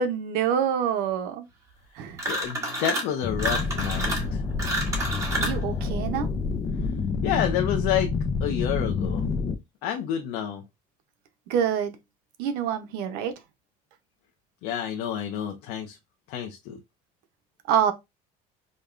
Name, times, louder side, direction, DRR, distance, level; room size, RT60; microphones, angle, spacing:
voice 1, 0.0-1.4 1.9-2.2 5.4-6.3 11.5-12.0 12.4-13.3 17.7-17.9, right 8 dB, 80° right, 0.7 m, -26 dB
sound 1, 2.2-3.1 3.4-5.6, right 1 dB, 20° right, 1.2 m, -29 dB
voice 2, 2.3-4.4 7.2-8.1 8.4-9.2 9.8-10.6 14.6-16.0 16.3-16.8, left 10 dB, 85° left, 0.6 m, -29 dB
sound 2, 3.2-9.5, left 4 dB, 25° left, 0.4 m, -28 dB
5.1 x 2.2 x 2.4 m
cardioid pair, 145°, 16 cm